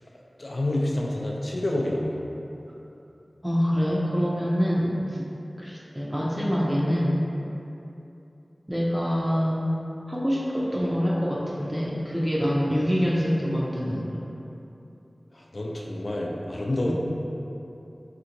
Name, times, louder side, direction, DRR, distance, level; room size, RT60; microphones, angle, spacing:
voice 1, 0.4-2.2 12.7-12.9 15.3-16.9, left 1 dB, 55° left, -2 dB, 0.3 m, -28 dB
voice 2, 3.4-5.2 5.6-7.2 8.7-9.7 10.1-14.2 16.8-16.9, equal, 15° right, -6 dB, 0.5 m, -25 dB
3.3 x 2.8 x 2.5 m, 2.9 s
wide cardioid pair, 60°, 0 cm